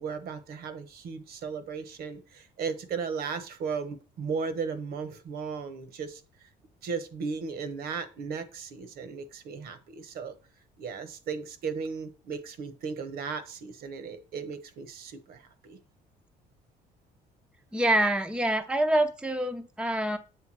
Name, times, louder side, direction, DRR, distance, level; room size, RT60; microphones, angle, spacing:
voice 1, 0.0-6.2 6.8-10.3 10.8-15.8, right 5 dB, 65° right, 11 dB, 1.2 m, -36 dB
voice 2, 17.7-20.2, right 1 dB, 5° right, 7 dB, 0.7 m, -26 dB
7.9 x 3.5 x 6.1 m, 0.34 s
cardioid pair, 110°, 17 cm